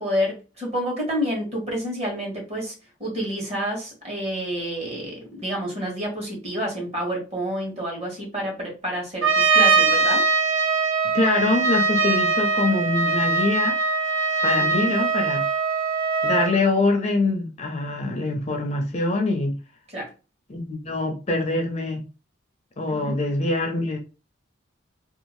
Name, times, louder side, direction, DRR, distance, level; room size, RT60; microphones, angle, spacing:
voice 1, 0.0-2.7 3.0-10.3 14.6-14.9 19.9-20.1 22.9-23.2, equal, 35° right, 1.3 m, -29 dB
Trumpet, 9.2-16.6, right 4 dB, 80° right, 0.6 m, -21 dB
voice 2, 11.1-13.8 14.4-15.4 16.2-19.6 20.5-22.1 22.8-24.0, left 2 dB, 35° left, 0.4 m, -24 dB
2.7 x 2.4 x 3.0 m
head